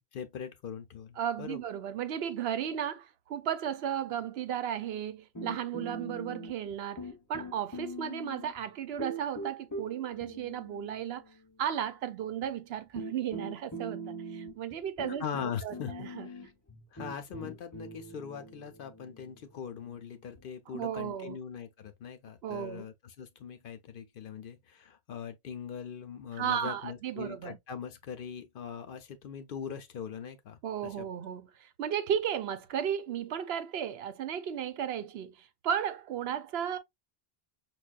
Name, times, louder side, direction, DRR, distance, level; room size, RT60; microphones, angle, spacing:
voice 1, 0.0-1.6 15.2-16.4 16.9-30.6 31.0-31.1, left 7 dB, 65° left, 0.7 m, -41 dB
voice 2, 1.2-11.2 11.6-15.2 15.6-16.3 20.7-21.4 22.4-22.9 26.3-27.6 30.6-36.8, right 9 dB, 80° right, 0.8 m, -34 dB
sound 1, 5.3-6.7 7.0-8.6 9.0-11.4 12.4-12.5 12.9-20.5, right 1 dB, 20° left, 0.8 m, -42 dB
5.5 x 2.2 x 2.3 m
omnidirectional pair, 1.0 m